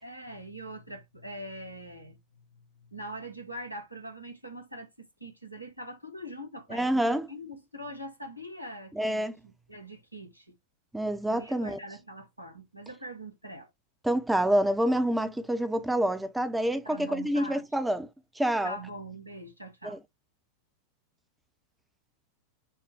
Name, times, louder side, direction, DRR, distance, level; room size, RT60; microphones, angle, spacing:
voice 1, 0.0-2.4 2.7-4.9 5.2-10.5 11.2-13.7 16.8-17.6 18.6-20.0, equal, 90° right, 1.1 m, -43 dB
voice 2, 6.7-7.3 9.0-9.3 10.9-11.8 14.0-18.1 18.4-18.7 19.8-20.0, right 1 dB, 5° right, 0.6 m, -27 dB
6.1 x 2.1 x 3.3 m
figure-of-eight pair, 90°, 0 cm